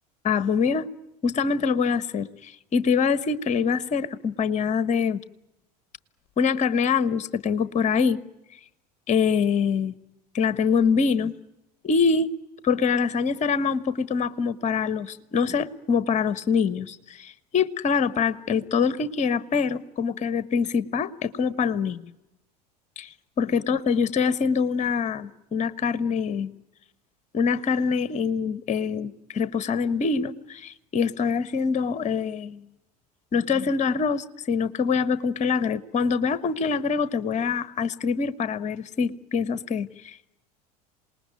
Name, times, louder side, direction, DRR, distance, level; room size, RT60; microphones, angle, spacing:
voice 1, 0.2-0.9 1.2-5.2 6.4-8.2 9.1-9.9 10.3-11.3 11.8-12.3 12.6-22.0 23.0-23.1 23.4-26.5 27.3-32.6 33.3-40.3, left 5 dB, 35° left, 15 dB, 1.3 m, -24 dB
27.0 x 19.5 x 9.4 m, 0.97 s
hypercardioid pair, 75°, 21 cm